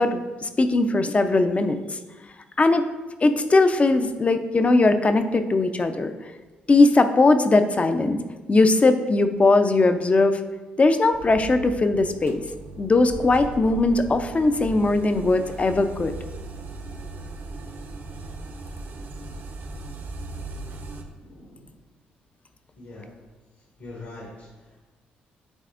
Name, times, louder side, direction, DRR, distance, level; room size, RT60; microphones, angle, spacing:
voice 1, 0.0-2.0 2.6-2.9 3.2-6.1 6.7-8.2 8.5-10.4 10.8-12.4 12.8-16.1, left 2 dB, 30° left, 8 dB, 0.6 m, -19 dB
sound 1, 11.1-21.0, right 2 dB, 60° right, 0.9 m, -38 dB
voice 2, 18.6-19.2 21.2-21.8 22.8-23.1 23.8-24.8, left 2 dB, 75° left, -5 dB, 1.8 m, -44 dB
9.9 x 4.1 x 2.5 m, 1.2 s
supercardioid pair, 55°, 4 cm